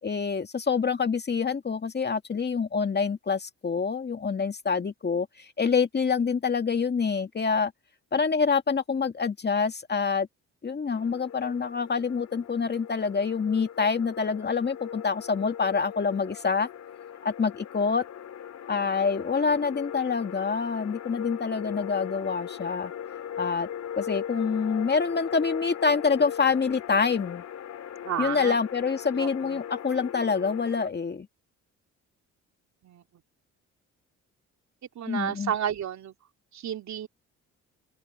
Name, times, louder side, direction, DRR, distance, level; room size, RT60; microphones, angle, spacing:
voice 1, 0.0-7.7 8.1-10.3 10.6-16.7 17.2-18.0 18.7-22.9 23.4-23.7 24.0-27.4 28.2-31.3 35.1-35.5, left 5 dB, 35° left, 2.2 m, -26 dB
sound 1, 10.9-30.9, left 9 dB, 65° left, 3.1 m, -39 dB
voice 2, 18.6-19.0 28.0-28.6 29.1-29.6 32.8-33.0 34.9-36.1 36.5-37.1, right 9 dB, 65° right, 3.2 m, -32 dB
open air
cardioid pair, 90°, 30 cm